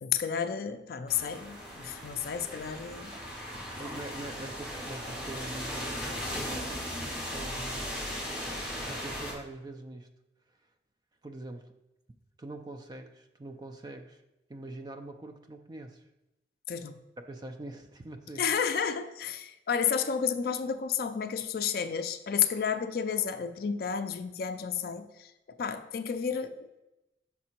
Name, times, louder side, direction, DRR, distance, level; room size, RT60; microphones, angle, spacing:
voice 1, 0.0-3.1 16.7-16.9 18.4-25.3 25.6-26.8, left 7 dB, 55° left, 9 dB, 0.4 m, -31 dB
sound 1, 1.1-9.3, equal, 5° right, 1.4 m, -37 dB
voice 2, 3.8-6.3 7.3-8.1 8.4-10.1 11.2-11.7 12.4-14.2 14.5-16.1 17.2-18.4, right 2 dB, 20° right, 6 dB, 0.3 m, -43 dB
5.9 x 3.7 x 4.4 m, 0.95 s
head